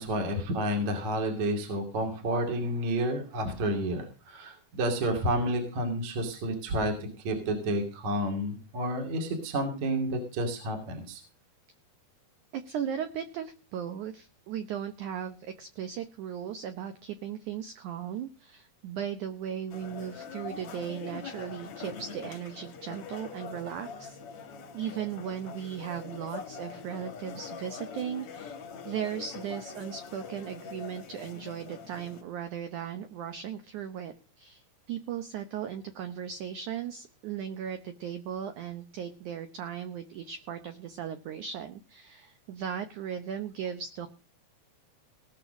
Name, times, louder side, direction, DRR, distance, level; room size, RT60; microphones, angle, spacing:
voice 1, 0.0-11.2, right 1 dB, 50° right, 4 dB, 3.5 m, -30 dB
voice 2, 12.5-24.2 24.7-28.6 28.9-44.1, right 9 dB, 70° right, 9 dB, 1.9 m, -37 dB
sound 1, 19.7-32.2, left 5 dB, 50° left, 2.0 m, -43 dB
19.0 x 6.7 x 6.3 m, 0.34 s
omnidirectional pair, 4.6 m